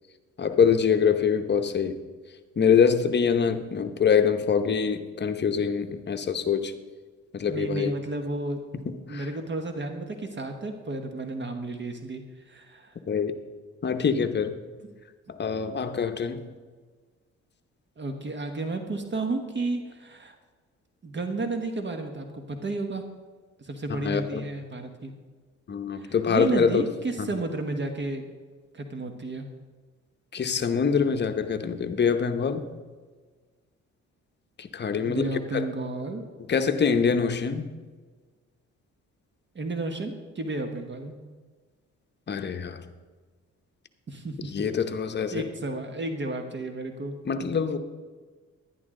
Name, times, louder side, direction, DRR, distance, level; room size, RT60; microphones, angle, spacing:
voice 1, 0.4-1.9 2.6-6.7 7.3-7.9 8.9-9.2 13.1-13.3 13.8-14.5 15.4-16.5 23.9-24.5 25.7-26.8 27.2-27.3 30.3-32.6 34.6-35.7 36.5-37.6 42.3-42.8 44.5-45.4 47.3-47.8, left 6 dB, 35° left, 8 dB, 0.8 m, -24 dB
voice 2, 7.5-8.6 9.1-13.0 18.0-20.4 21.0-23.0 23.6-25.1 25.9-28.3 28.7-29.4 35.1-36.3 39.5-41.2 44.1-44.5 45.3-47.2, right 2 dB, 35° right, 6 dB, 1.1 m, -32 dB
11.0 x 10.5 x 3.7 m, 1.4 s
cardioid pair, 90°, 30 cm